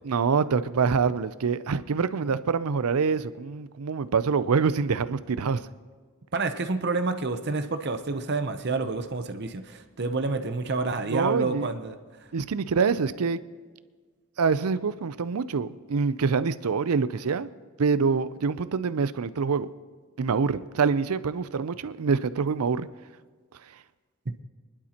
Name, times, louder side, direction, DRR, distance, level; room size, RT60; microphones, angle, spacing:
voice 1, 0.0-5.6 11.1-11.7 12.3-13.4 14.4-17.5 17.8-19.7 20.2-22.9, right 5 dB, 90° right, 15 dB, 0.5 m, -25 dB
voice 2, 6.3-12.0, right 3 dB, 50° right, 8 dB, 0.7 m, -28 dB
25.0 x 11.5 x 2.9 m, 1.5 s
head